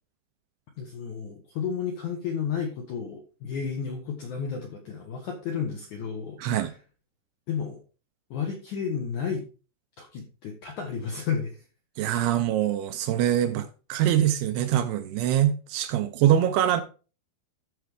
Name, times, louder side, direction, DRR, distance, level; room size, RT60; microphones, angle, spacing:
voice 1, 0.8-6.8 7.5-7.8 8.3-9.4 10.0-11.6, left 6 dB, 75° left, 1.8 m, -32 dB
voice 2, 6.4-6.7 12.0-16.8, right 11 dB, 80° right, 2.4 m, -24 dB
14.0 x 4.7 x 3.5 m
omnidirectional pair, 5.0 m